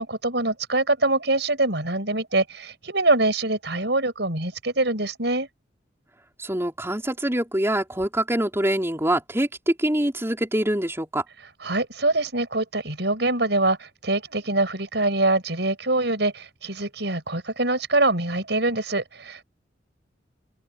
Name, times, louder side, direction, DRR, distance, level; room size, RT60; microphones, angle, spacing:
voice 1, 0.0-5.5 11.6-19.4, right 2 dB, 65° right, 6.7 m, -24 dB
voice 2, 6.4-11.2, right 1 dB, 15° right, 4.0 m, -24 dB
open air
head